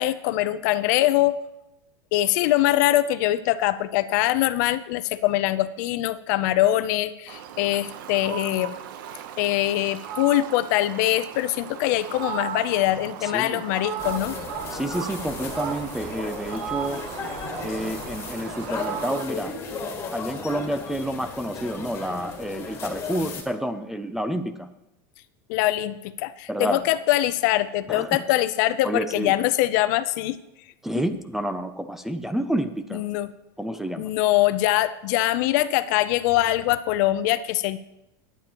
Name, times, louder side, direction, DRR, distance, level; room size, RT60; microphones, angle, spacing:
voice 1, 0.0-1.4 2.1-8.8 9.4-14.4 25.5-30.4 30.9-31.0 32.9-33.3 34.0-37.8, left 15 dB, 55° left, 14 dB, 0.6 m, -23 dB
Fowl, 7.3-19.3, right 9 dB, 70° right, 0.9 m, -36 dB
voice 2, 13.2-13.6 14.7-17.0 17.6-19.5 20.1-24.7 26.5-26.8 27.9-28.2 28.8-29.3 30.8-33.0 33.6-34.1, right 1 dB, 5° right, 9 dB, 0.4 m, -29 dB
sound 1, 14.0-23.4, left 4 dB, 20° left, 1.8 m, -35 dB
21.5 x 9.1 x 3.0 m, 0.92 s
supercardioid pair, 165°, 12 cm